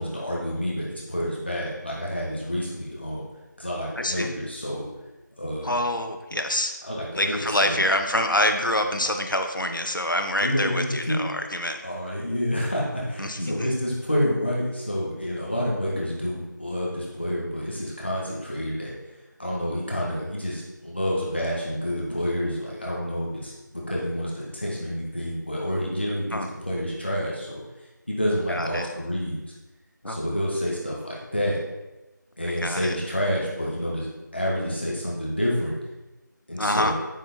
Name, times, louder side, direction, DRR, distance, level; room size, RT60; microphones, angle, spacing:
voice 1, 0.0-3.3 3.6-4.8 5.4-5.7 6.8-7.8 10.4-11.2 11.8-18.9 19.4-27.6 28.1-29.4 30.1-31.6 32.4-35.7 36.5-36.9, equal, 30° left, -5 dB, 1.5 m, -28 dB
voice 2, 4.0-4.3 5.6-6.7 7.1-11.8 13.2-13.7 26.3-26.5 28.5-28.9 30.0-30.2 32.6-32.9 36.6-36.9, left 1 dB, 80° left, 6 dB, 1.1 m, -26 dB
9.9 x 4.5 x 4.2 m, 1.1 s
figure-of-eight pair, 175°, 11 cm